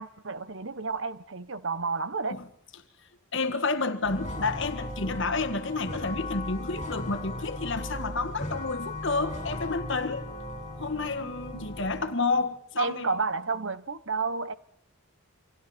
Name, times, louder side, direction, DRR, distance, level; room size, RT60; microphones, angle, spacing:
voice 1, 0.0-2.4 11.5-11.7 12.8-14.5, right 4 dB, 60° right, 1.1 m, -31 dB
voice 2, 3.3-10.3 10.8-13.1, left 3 dB, 55° left, 1.7 m, -30 dB
sound 1, 4.0-12.0, left 1 dB, 30° left, 5.5 m, -37 dB
28.5 x 25.0 x 4.4 m
head